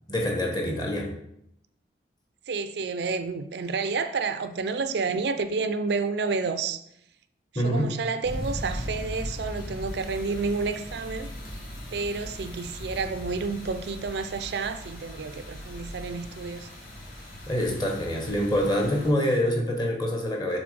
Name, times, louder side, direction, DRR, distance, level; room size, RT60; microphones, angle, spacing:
voice 1, 0.1-1.1 7.5-7.9 17.5-20.6, equal, 25° left, 1.3 m, -25 dB
voice 2, 2.5-6.8 7.5-11.3 11.9-16.7, right 4 dB, 65° right, 0.4 m, -30 dB
sound 1, 8.2-19.1, equal, 55° left, 2.1 m, -38 dB
6.9 x 3.7 x 5.2 m
head